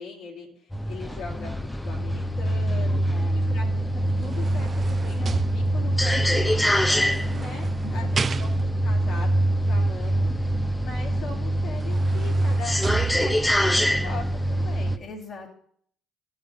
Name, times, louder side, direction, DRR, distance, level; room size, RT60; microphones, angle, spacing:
voice 1, 0.0-1.5 1.8-3.0 3.5-3.9 4.2-8.1 8.4-15.0, left 4 dB, 75° left, -3 dB, 2.5 m, -40 dB
sound 1, 0.7-15.0, right 1 dB, 10° left, 0.7 m, -24 dB
voice 2, 3.1-3.6 7.8-8.3 15.0-15.5, left 3 dB, 45° left, -3 dB, 2.3 m, -41 dB
sound 2, 3.9-6.1 7.0-8.9 11.2-11.3 11.7-13.7 14.2-14.4, right 6 dB, 40° right, 0.4 m, -34 dB
13.0 x 5.7 x 4.1 m, 0.62 s
hypercardioid pair, 60°, 0 cm